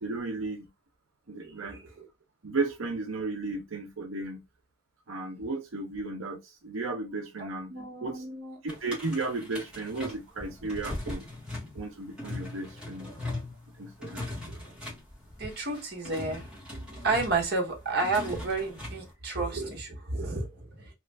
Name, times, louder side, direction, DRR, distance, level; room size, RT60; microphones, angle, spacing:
voice 1, 0.0-0.7 1.3-1.8 2.4-4.4 5.1-7.7 8.0-8.2 8.6-11.3 11.7-13.1 13.8-14.3, right 3 dB, 85° right, 0.7 m, -34 dB
voice 2, 1.4-2.1 7.4-8.6 14.5-14.6 15.4-16.5 17.0-20.9, right 3 dB, 50° right, 1.1 m, -31 dB
sound 1, 8.7-19.1, left 2 dB, 5° right, 1.1 m, -40 dB
3.0 x 2.4 x 3.2 m
head